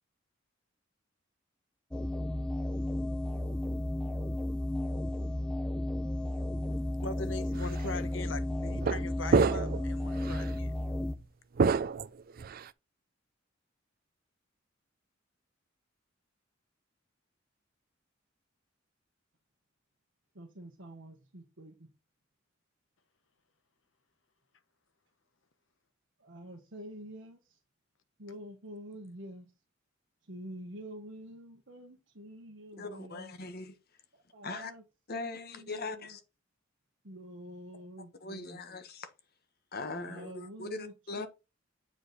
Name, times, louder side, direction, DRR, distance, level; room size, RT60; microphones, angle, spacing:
sound 1, 1.9-11.1, left 1 dB, 5° left, 0.7 m, -33 dB
voice 1, 7.0-10.7, left 3 dB, 70° left, 1.1 m, -41 dB
sound 2, 7.6-7.8 8.7-9.0 9.3-9.8 10.2-10.4 11.6-12.7, right 5 dB, 50° right, 0.4 m, -27 dB
voice 2, 20.3-21.9 26.2-27.6 28.2-29.5 30.2-33.3 34.1-34.8 35.2-36.2 37.0-38.6 39.8-41.3, equal, 65° right, 1.4 m, -47 dB
voice 3, 32.8-33.7 34.4-34.7 35.1-36.2 38.2-39.1 39.7-41.3, left 3 dB, 50° left, 1.3 m, -40 dB
8.5 x 4.9 x 4.1 m
head